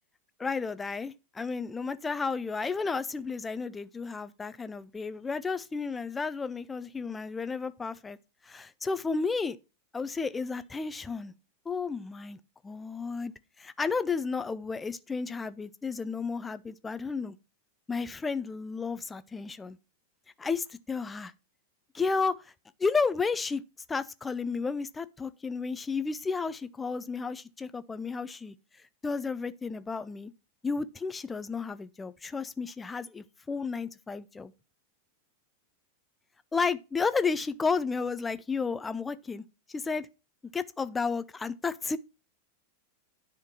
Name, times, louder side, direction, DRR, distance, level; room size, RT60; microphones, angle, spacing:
voice 1, 0.4-8.2 8.4-9.6 9.9-11.3 11.7-17.4 17.9-19.8 20.4-21.3 21.9-22.5 22.8-23.6 23.9-30.3 30.6-34.5 36.5-40.1 40.5-42.0, left 4 dB, 15° left, 0.5 m, -32 dB
10.0 x 3.7 x 6.0 m
figure-of-eight pair, 90°, 0 cm